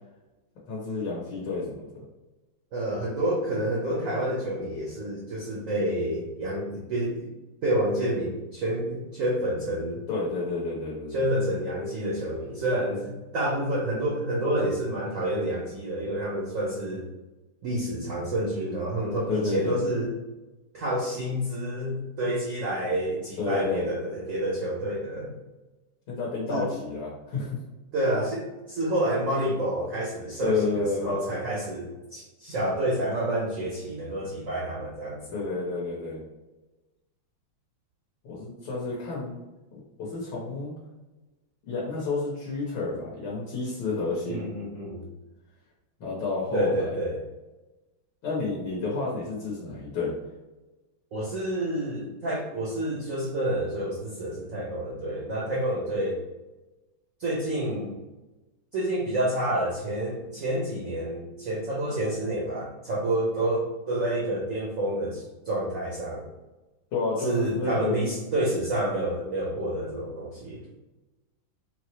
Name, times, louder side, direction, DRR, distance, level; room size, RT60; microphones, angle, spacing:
voice 1, 0.7-1.8 10.1-11.2 19.3-19.8 23.4-23.9 26.1-27.6 30.4-31.2 35.3-36.2 38.2-39.4 40.0-40.7 41.7-44.5 46.0-46.8 48.2-50.1 66.9-68.0, left 3 dB, 75° left, -5 dB, 1.7 m, -30 dB
voice 2, 2.7-7.2 7.6-10.0 11.1-17.0 17.6-20.1 20.7-25.3 26.5-26.7 27.9-35.5 44.3-45.1 46.5-47.2 51.1-56.2 57.2-58.0 58.7-66.3 67.2-70.6, right 1 dB, 80° right, -4 dB, 0.7 m, -29 dB
4.6 x 2.1 x 2.8 m, 1.1 s
omnidirectional pair, 2.3 m